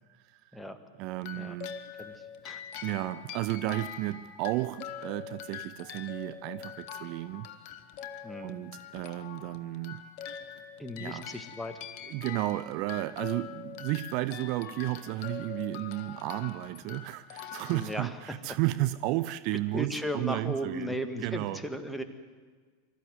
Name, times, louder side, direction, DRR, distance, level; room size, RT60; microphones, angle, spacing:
voice 1, 1.0-1.7 2.8-7.5 8.4-10.0 11.0-11.3 12.1-21.0 21.2-21.6, right 17 dB, 45° right, 0.6 m, -33 dB
sound 1, 1.2-18.6, left 8 dB, 45° left, 1.3 m, -44 dB
voice 2, 8.2-8.6 10.8-11.9 17.7-18.4 19.7-22.0, equal, 5° left, 1.9 m, -36 dB
24.5 x 14.0 x 9.5 m
figure-of-eight pair, 85°, 0 cm